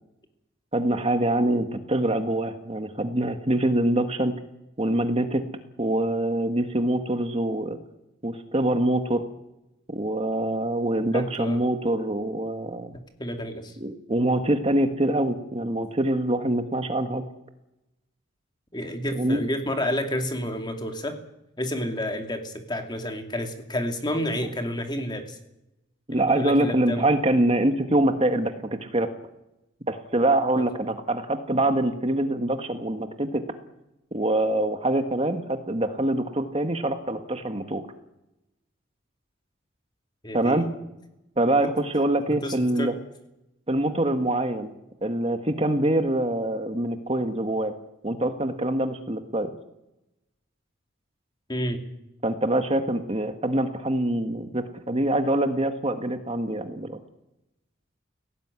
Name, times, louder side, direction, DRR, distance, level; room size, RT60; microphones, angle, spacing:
voice 1, 0.7-4.3 4.8-5.5 5.8-7.8 8.2-9.2 9.9-13.0 13.8-17.2 19.1-19.4 26.1-29.1 29.9-33.4 34.1-37.8 40.3-40.7 41.4-42.9 43.7-44.7 45.0-47.7 48.0-49.5 52.2-57.0, right 1 dB, 30° right, 7 dB, 1.5 m, -24 dB
voice 2, 11.1-11.6 12.9-13.7 18.7-21.2 21.6-25.4 26.4-27.1 30.6-30.7 40.2-40.7 41.6-41.7 42.3-42.9 51.5-51.8, equal, 20° left, 5 dB, 2.6 m, -30 dB
19.0 x 17.5 x 9.7 m, 0.91 s
head